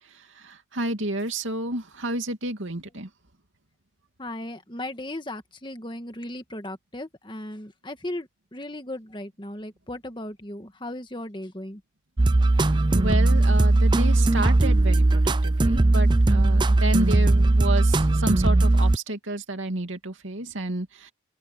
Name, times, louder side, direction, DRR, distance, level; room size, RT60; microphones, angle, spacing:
voice 1, 0.4-3.1 12.9-21.1, right 1 dB, 85° right, 2.6 m, -30 dB
voice 2, 4.2-11.8, left 1 dB, 25° left, 1.6 m, -36 dB
sound 1, 12.2-19.0, right 2 dB, 25° right, 0.5 m, -19 dB
open air
head